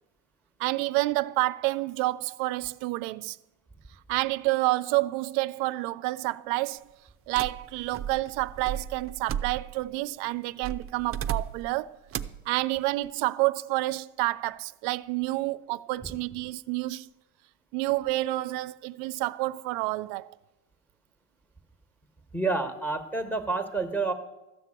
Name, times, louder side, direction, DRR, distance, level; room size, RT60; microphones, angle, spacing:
voice 1, 0.6-3.4 4.1-6.8 7.3-12.0 12.5-17.1 17.7-20.3, right 19 dB, 90° right, 0.5 m, -29 dB
sound 1, 7.3-9.9 10.6-11.7 12.1-12.5, right 9 dB, 35° right, 0.5 m, -35 dB
voice 2, 22.3-24.1, right 3 dB, 5° left, 1.3 m, -29 dB
13.5 x 6.0 x 8.7 m
cardioid pair, 115°, 42 cm